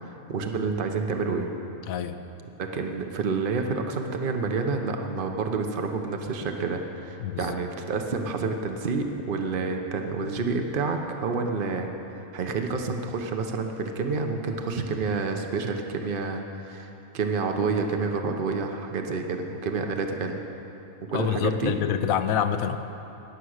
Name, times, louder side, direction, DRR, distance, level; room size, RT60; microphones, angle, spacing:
voice 1, 0.0-1.5 2.6-20.4 21.1-21.8, right 4 dB, 45° right, 4 dB, 1.0 m, -29 dB
voice 2, 1.9-2.2 7.2-7.6 21.1-22.8, left 9 dB, 90° left, 10 dB, 1.1 m, -27 dB
19.5 x 7.3 x 6.5 m, 3.0 s
omnidirectional pair, 1.4 m